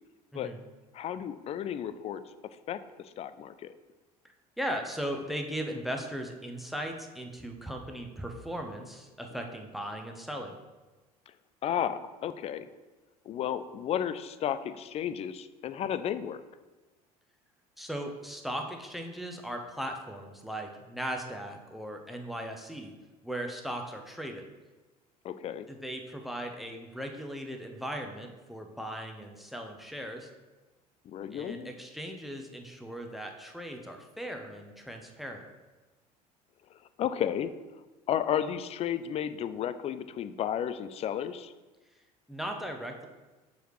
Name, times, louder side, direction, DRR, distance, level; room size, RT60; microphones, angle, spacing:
voice 1, 0.9-2.2 2.7-3.7 11.6-12.7 13.3-16.4 25.2-25.7 31.1-31.7 37.0-37.5 38.1-41.5, left 9 dB, 30° left, 12 dB, 0.4 m, -33 dB
voice 2, 4.6-10.6 17.8-22.9 23.2-24.5 25.7-30.3 31.3-35.4 42.3-43.1, equal, ahead, 3 dB, 0.7 m, -38 dB
6.5 x 4.7 x 3.1 m, 1.2 s
figure-of-eight pair, 65°, 20 cm